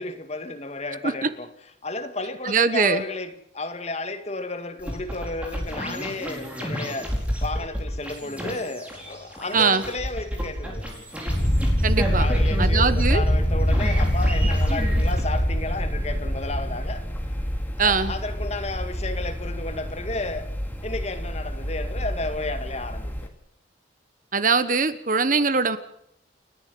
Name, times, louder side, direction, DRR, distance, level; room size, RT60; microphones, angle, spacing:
voice 1, 0.0-1.5 1.8-10.9 12.2-17.1 17.8-20.5 20.8-23.3, left 2 dB, 35° left, 2.0 m, -32 dB
voice 2, 2.4-3.0 9.5-9.8 11.8-12.3 12.6-13.2 17.8-18.1 24.3-25.8, right 4 dB, 45° right, 1.2 m, -22 dB
sound 1, 4.8-15.4, equal, 5° right, 4.8 m, -32 dB
sound 2, 11.3-23.3, equal, 10° left, 2.3 m, -25 dB
30.0 x 11.0 x 8.5 m
head